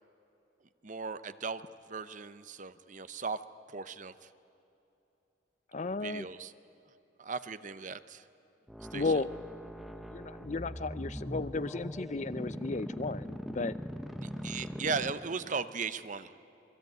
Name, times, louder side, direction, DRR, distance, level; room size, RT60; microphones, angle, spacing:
voice 1, 0.8-1.6 1.9-3.4 3.7-4.3 6.0-6.5 7.2-8.2 8.9-9.0 14.2-16.3, right 5 dB, 40° right, 13 dB, 0.7 m, -37 dB
voice 2, 5.7-6.3 8.9-9.3 10.1-13.7, left 3 dB, 40° left, 15 dB, 0.5 m, -34 dB
sound 1, 8.7-15.6, equal, ahead, 0.9 m, -41 dB
27.0 x 21.0 x 9.4 m, 2.9 s
head